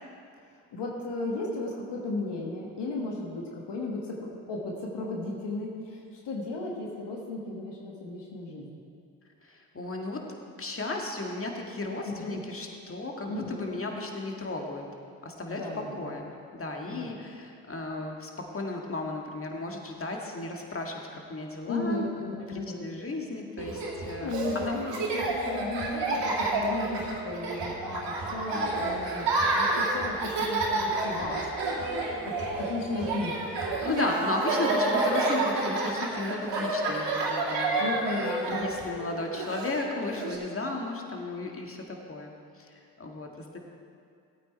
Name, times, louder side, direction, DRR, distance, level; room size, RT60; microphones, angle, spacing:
voice 1, 0.7-8.8 12.0-12.4 13.3-13.7 15.5-16.1 16.9-17.2 21.7-22.9 24.2-31.4 32.2-33.4 37.8-38.7, left 2 dB, 70° left, -1 dB, 1.7 m, -35 dB
voice 2, 9.4-10.3 10.6-14.8 15.2-22.0 22.4-24.8 33.8-38.1 38.5-43.6, left 2 dB, 30° left, 1 dB, 2.0 m, -35 dB
Laughter, 23.6-40.4, right 2 dB, 70° right, 2.3 m, -29 dB
15.5 x 8.8 x 4.5 m, 2.4 s
hypercardioid pair, 40°, 43 cm